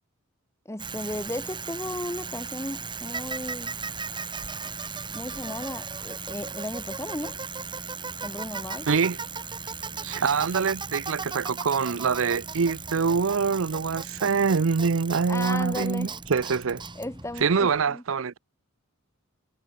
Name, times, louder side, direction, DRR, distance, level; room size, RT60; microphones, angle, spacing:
voice 1, 0.6-3.7 5.1-7.4 8.2-8.9 15.3-16.1 16.9-18.0, left 1 dB, 15° left, 1.7 m, -35 dB
Bicycle, 0.8-17.9, right 5 dB, 20° right, 3.2 m, -36 dB
voice 2, 8.9-9.2 10.0-16.8 17.4-18.4, right 5 dB, 65° right, 0.6 m, -25 dB
head